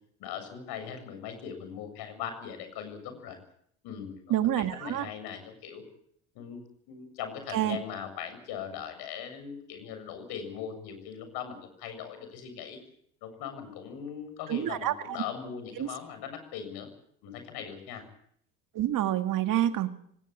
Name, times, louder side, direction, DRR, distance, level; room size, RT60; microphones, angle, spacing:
voice 1, 0.2-3.4 3.8-5.8 6.3-12.8 13.2-16.9 17.2-18.0, left 8 dB, 70° left, 8 dB, 7.5 m, -40 dB
voice 2, 4.3-5.1 7.5-7.8 14.5-14.9 15.8-15.9 18.8-19.9, right 12 dB, 55° right, 8 dB, 2.1 m, -27 dB
19.5 x 19.0 x 8.8 m, 0.68 s
supercardioid pair, 95°, 39 cm